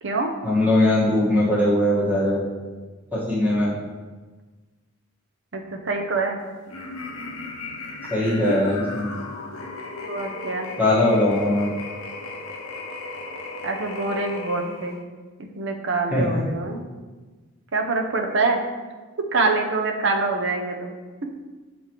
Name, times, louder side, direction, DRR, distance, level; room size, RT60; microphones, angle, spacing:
voice 1, 0.4-2.4 3.1-3.8 8.1-9.1 10.8-11.7 16.1-16.4, left 1 dB, 10° right, -7 dB, 1.4 m, -20 dB
voice 2, 5.5-6.4 10.0-10.7 13.6-15.0 15.4-16.8 17.7-18.6 19.3-21.0, right 3 dB, 60° right, 3 dB, 0.7 m, -25 dB
sound 1, 6.7-15.0, left 2 dB, 90° left, 0.7 m, -36 dB
6.9 x 4.9 x 3.0 m, 1.3 s
head